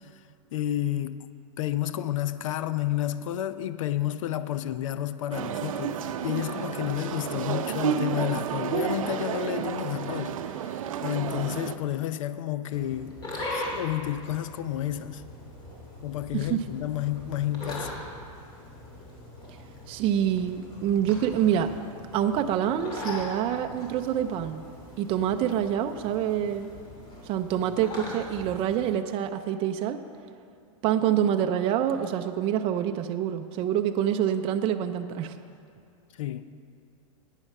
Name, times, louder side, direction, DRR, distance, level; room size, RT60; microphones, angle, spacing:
voice 1, 0.5-1.3 1.6-13.2 13.5-15.2 16.0-18.0 36.2-36.5, left 12 dB, 75° left, 13 dB, 0.5 m, -31 dB
sound 1, 5.3-11.8, right 8 dB, 85° right, 0.6 m, -31 dB
sound 2, 12.7-28.9, left 1 dB, 25° left, 2.6 m, -41 dB
voice 2, 16.3-16.7 19.9-21.7 22.1-24.6 25.0-26.7 27.2-30.0 30.8-35.4, right 10 dB, 35° right, 7 dB, 0.5 m, -26 dB
10.5 x 9.1 x 5.5 m, 2.4 s
supercardioid pair, 140°, 17 cm